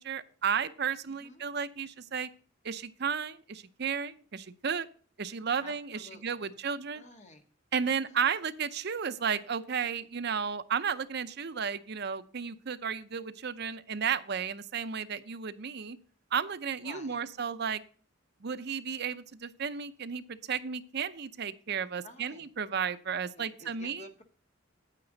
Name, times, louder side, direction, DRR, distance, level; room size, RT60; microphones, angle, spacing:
voice 1, 0.0-2.3 2.6-4.9 5.2-7.0 7.7-16.0 16.3-17.8 18.4-24.1, right 7 dB, 55° right, 12 dB, 0.6 m, -33 dB
voice 2, 5.6-6.6 6.9-7.4 7.8-8.3 16.8-17.3 22.0-22.5 23.4-24.2, left 2 dB, 35° left, 5 dB, 1.5 m, -52 dB
9.0 x 9.0 x 3.9 m, 0.42 s
head